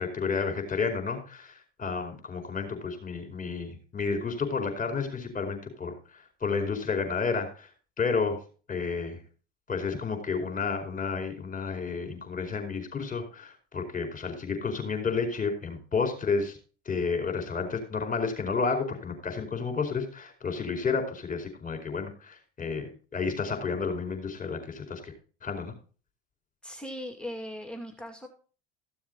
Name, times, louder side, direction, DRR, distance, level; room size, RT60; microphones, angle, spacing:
voice 1, 0.0-7.7 8.0-8.4 8.7-9.2 9.7-16.6 16.8-25.1 25.4-25.7, left 5 dB, 25° left, 5 dB, 4.7 m, -31 dB
voice 2, 26.6-28.3, equal, 5° left, 3 dB, 2.4 m, -39 dB
15.0 x 7.1 x 3.9 m, 0.37 s
hypercardioid pair, 90°, 33 cm